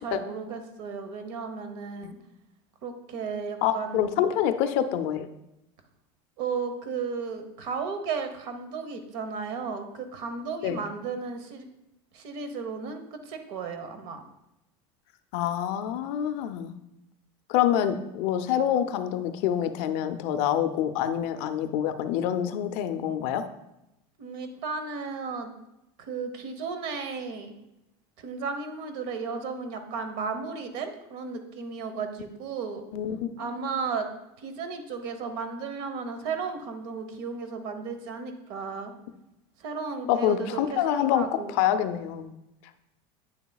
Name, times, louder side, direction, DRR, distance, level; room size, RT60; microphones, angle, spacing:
voice 1, 0.0-2.2 2.8-4.2 6.4-11.7 12.1-14.2 24.2-25.5 26.0-27.5 28.2-32.8 33.4-34.1 34.4-38.9 39.6-41.6, right 5 dB, 55° right, 8 dB, 1.0 m, -34 dB
voice 2, 3.6-5.3 10.6-10.8 15.3-16.7 17.5-23.4 32.9-33.2 40.1-42.3, left 10 dB, 50° left, 10 dB, 0.5 m, -26 dB
9.2 x 7.0 x 2.3 m, 0.90 s
cardioid pair, 175°, 14 cm